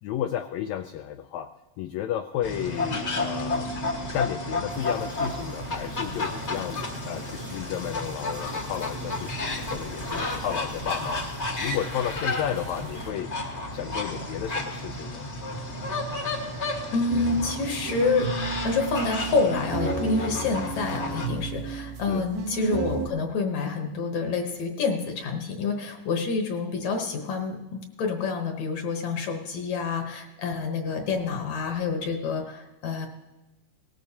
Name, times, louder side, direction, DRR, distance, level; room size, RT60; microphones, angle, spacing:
voice 1, 0.0-1.5 1.8-3.7 4.1-11.2 11.6-13.3 13.7-15.2 22.0-22.3, left 10 dB, 90° left, 8 dB, 1.6 m, -32 dB
sound 1, 2.4-21.3, left 2 dB, 45° left, 0.9 m, -32 dB
sound 2, 4.7-13.1, right 3 dB, 55° right, 1.7 m, -46 dB
voice 2, 16.9-33.1, left 4 dB, 65° left, 3 dB, 2.1 m, -28 dB
sound 3, 17.1-23.1, right 5 dB, 85° right, 2.7 m, -32 dB
18.5 x 13.5 x 2.8 m, 1.1 s
omnidirectional pair, 3.7 m